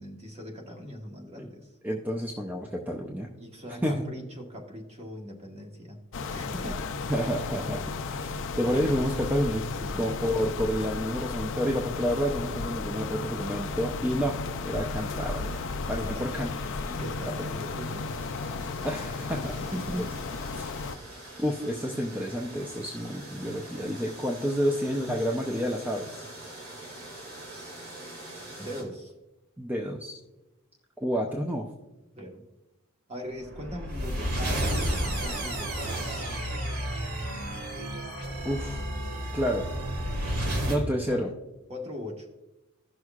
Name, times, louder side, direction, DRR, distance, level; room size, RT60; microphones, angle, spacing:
voice 1, 0.0-1.7 3.4-6.0 6.3-6.8 9.8-10.1 16.0-16.5 16.8-18.1 19.5-20.0 21.1-21.2 27.4-27.7 28.6-29.1 32.1-32.4 33.1-36.5 40.8-41.2 41.7-42.3, equal, 30° right, 1 dB, 1.4 m, -40 dB
voice 2, 1.8-3.3 3.8-4.0 7.1-9.6 10.0-15.6 15.9-16.5 18.8-19.6 20.5-20.7 21.4-26.3 29.6-30.1 31.0-31.7 38.4-38.8 39.3-39.7 40.7-41.3, equal, 10° right, 1 dB, 0.6 m, -29 dB
sound 1, 6.1-21.0, left 4 dB, 60° left, 0.5 m, -34 dB
sound 2, 14.9-28.8, right 1 dB, 70° right, 2.5 m, -45 dB
sound 3, 33.4-40.8, right 1 dB, 90° right, 1.9 m, -31 dB
16.0 x 6.2 x 2.4 m, 1.0 s
head